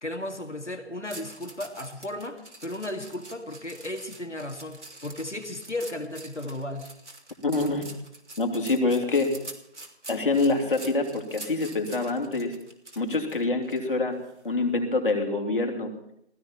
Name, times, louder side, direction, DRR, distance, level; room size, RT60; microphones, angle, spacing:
voice 1, 0.0-6.9, left 1 dB, 90° left, 5 dB, 2.3 m, -35 dB
sound 1, 1.1-13.8 14.2-14.5, right 2 dB, 80° right, 3.3 m, -45 dB
voice 2, 7.4-7.9 8.4-9.3 10.1-12.6 13.0-14.2 14.4-15.9, left 3 dB, 50° left, 3 dB, 2.9 m, -26 dB
16.5 x 16.0 x 4.4 m, 0.73 s
figure-of-eight pair, 155°, 34 cm